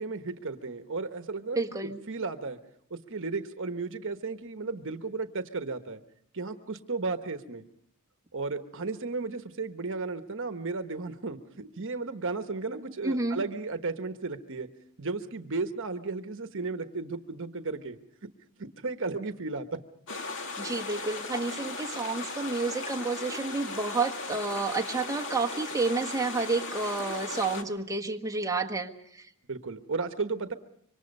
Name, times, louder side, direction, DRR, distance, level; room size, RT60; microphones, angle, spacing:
voice 1, 0.0-2.6 2.9-6.0 6.3-7.6 8.3-14.7 15.0-18.0 18.6-19.6 29.5-30.5, right 3 dB, 60° right, 8 dB, 1.1 m, -34 dB
voice 2, 1.5-2.0 13.0-13.4 20.6-29.3, right 3 dB, 15° right, 0 dB, 1.4 m, -30 dB
sound 1, 20.1-27.6, left 3 dB, 60° left, 2.2 m, -37 dB
26.0 x 24.5 x 5.4 m, 0.70 s
head